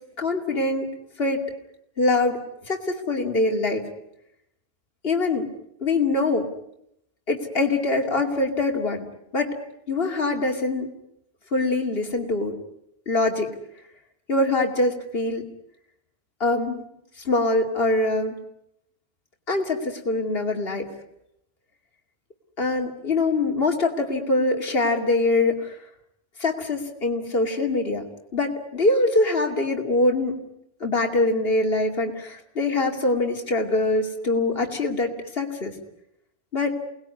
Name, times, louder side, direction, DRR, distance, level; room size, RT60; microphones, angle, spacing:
voice 1, 0.2-0.9 1.2-1.4 2.0-2.4 2.7-3.9 5.0-5.5 5.8-6.5 7.3-9.1 9.3-9.6 9.9-10.9 11.5-12.5 13.1-13.5 14.3-15.5 16.4-16.8 17.2-18.4 19.5-20.9 22.6-25.7 26.4-28.0 28.3-30.4 30.8-35.8 36.5-36.8, left 2 dB, 65° left, 2 dB, 2.8 m, -23 dB
29.5 x 20.0 x 9.7 m, 0.80 s
omnidirectional pair, 1.1 m